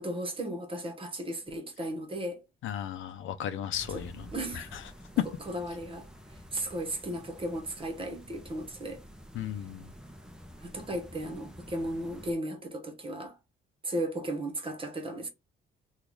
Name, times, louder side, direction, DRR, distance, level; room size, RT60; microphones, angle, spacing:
voice 1, 0.0-2.4 3.9-4.0 4.3-4.7 5.5-6.1 6.5-9.0 10.6-13.4 13.8-15.3, right 1 dB, 25° right, 1.2 m, -35 dB
voice 2, 2.6-4.8 5.2-5.3 9.3-9.9, left 11 dB, 80° left, 0.6 m, -34 dB
sound 1, 3.7-12.3, equal, 5° right, 0.7 m, -49 dB
2.9 x 2.5 x 3.7 m
cardioid pair, 90°, 20 cm